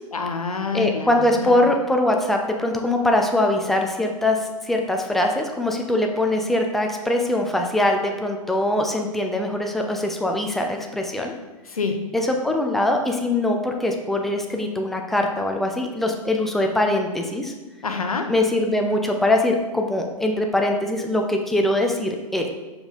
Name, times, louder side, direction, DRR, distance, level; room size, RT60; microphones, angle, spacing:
voice 1, 0.1-1.7 11.7-12.1 17.8-18.3, left 4 dB, 90° left, 6 dB, 0.7 m, -27 dB
voice 2, 0.7-11.3 12.1-17.5 18.3-22.5, left 1 dB, ahead, 2 dB, 0.6 m, -22 dB
5.4 x 4.7 x 3.8 m, 1.2 s
hypercardioid pair, 105°, 18 cm